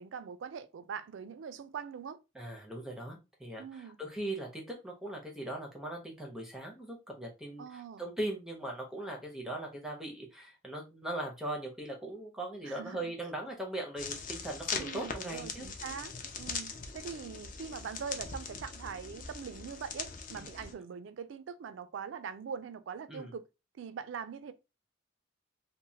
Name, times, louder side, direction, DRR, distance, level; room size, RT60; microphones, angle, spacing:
voice 1, 0.0-2.2 3.6-4.0 7.6-8.0 12.6-13.1 14.8-16.1 16.4-23.4 23.7-24.5, right 6 dB, 85° right, 0.3 m, -42 dB
voice 2, 2.3-15.7 20.4-20.5 23.1-23.3, right 1 dB, 5° right, 0.6 m, -40 dB
sound 1, 14.0-20.7, left 5 dB, 45° left, 0.4 m, -41 dB
3.0 x 2.1 x 2.7 m
head